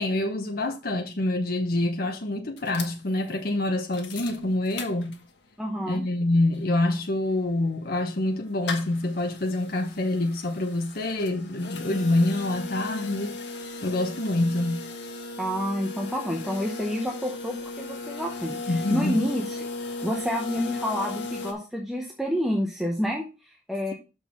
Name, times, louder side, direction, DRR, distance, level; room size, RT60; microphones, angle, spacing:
voice 1, 0.0-5.1 5.9-13.4 13.8-14.8 18.7-19.2, left 2 dB, 50° left, 1.0 m, -26 dB
sound 1, 2.6-5.5 5.9-6.0 6.2-21.5, left 3 dB, 65° left, 1.4 m, -37 dB
voice 2, 5.6-6.0 15.4-23.9, equal, ahead, 0.8 m, -29 dB
6.3 x 4.6 x 5.7 m
head